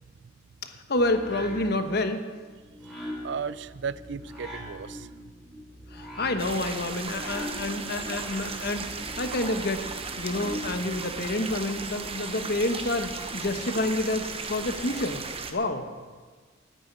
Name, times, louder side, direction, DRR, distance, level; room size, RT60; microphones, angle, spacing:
voice 1, 0.6-2.2 5.9-8.9 9.2-9.8 10.2-15.2 15.5-15.8, left 2 dB, 55° left, 7 dB, 1.2 m, -28 dB
sound 1, 0.9-10.9, equal, 5° left, 4.0 m, -42 dB
voice 2, 2.9-5.1, right 6 dB, 65° right, 17 dB, 0.4 m, -35 dB
sound 2, 6.4-15.5, right 4 dB, 30° right, 1.0 m, -36 dB
9.9 x 8.9 x 9.5 m, 1.5 s
head